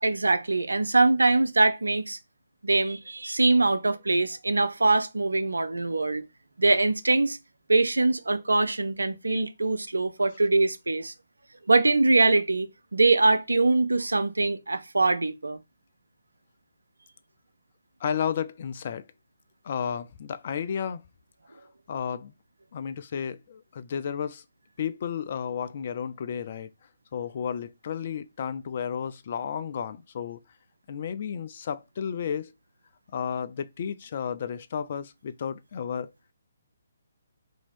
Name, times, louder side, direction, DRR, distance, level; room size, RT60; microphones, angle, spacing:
voice 1, 0.0-2.2 2.6-6.2 6.6-7.4 7.7-11.1 11.7-15.6, right 3 dB, 80° right, 0.5 m, -23 dB
voice 2, 18.0-19.0 19.6-21.0 21.9-22.3 22.7-24.4 24.8-26.7 27.1-30.4 30.9-32.5 33.1-36.1, left 7 dB, 45° left, 0.4 m, -32 dB
2.9 x 2.8 x 4.3 m
figure-of-eight pair, 140°, 0 cm